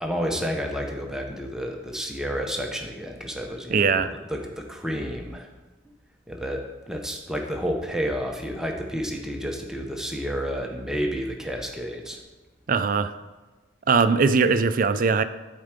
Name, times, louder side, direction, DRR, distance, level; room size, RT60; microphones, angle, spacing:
voice 1, 0.0-4.0 4.3-5.5 6.3-12.2, equal, 5° right, 2 dB, 0.8 m, -30 dB
voice 2, 3.7-4.1 12.7-13.1 13.9-15.2, right 5 dB, 45° right, 12 dB, 0.4 m, -20 dB
11.5 x 4.5 x 5.1 m, 1.2 s
head